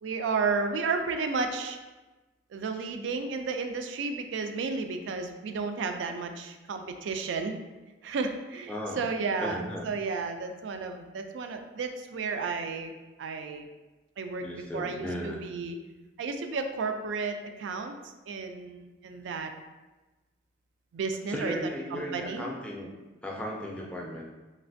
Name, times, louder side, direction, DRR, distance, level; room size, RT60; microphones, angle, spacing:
voice 1, 0.0-1.8 2.5-7.6 8.0-12.9 13.2-13.7 14.2-15.8 16.2-17.9 18.3-19.5 20.9-21.6 21.9-22.5, right 4 dB, 75° right, 6 dB, 0.3 m, -32 dB
voice 2, 8.7-9.1 9.4-9.9 14.4-15.4 21.3-22.9 23.2-24.2, equal, 5° left, -2 dB, 0.3 m, -36 dB
3.2 x 2.5 x 2.5 m, 1.2 s
head